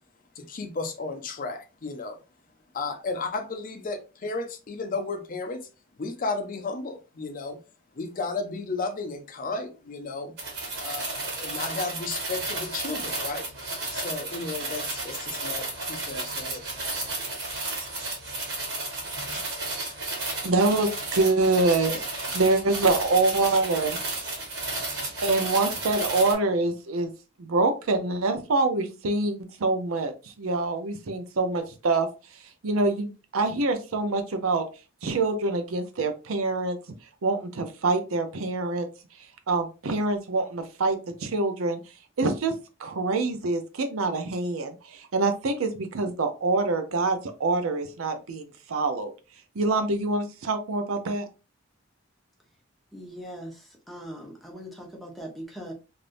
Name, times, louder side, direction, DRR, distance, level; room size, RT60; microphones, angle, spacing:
voice 1, 0.4-2.2 2.7-5.6 6.0-7.6 8.0-10.3 10.8-13.5 13.9-16.6, left 3 dB, 40° left, 6 dB, 0.5 m, -33 dB
sound 1, 10.4-26.3, right 2 dB, 50° right, 1.4 m, -33 dB
voice 2, 20.4-22.0 22.3-24.0 25.2-27.1 27.4-32.1 32.6-34.6 35.0-36.8 37.2-38.9 39.5-41.8 42.2-42.5 42.8-49.1 49.6-51.2, right 3 dB, 80° right, 8 dB, 0.6 m, -25 dB
voice 3, 52.9-55.7, equal, ahead, -1 dB, 0.8 m, -40 dB
3.3 x 2.6 x 2.5 m, 0.31 s
head